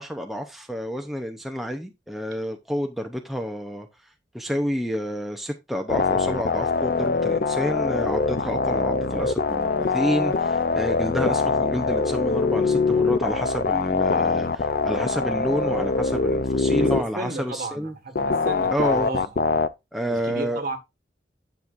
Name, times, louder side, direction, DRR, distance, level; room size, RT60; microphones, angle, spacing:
voice 1, 0.0-3.9 4.3-17.9 18.7-19.2 19.9-20.6, equal, ahead, 0.6 m, -29 dB
sound 1, 5.9-17.0 18.2-19.7, left 4 dB, 55° left, 0.5 m, -23 dB
voice 2, 16.8-19.3 20.1-20.8, right 2 dB, 50° right, 1.7 m, -33 dB
9.9 x 6.0 x 2.5 m
head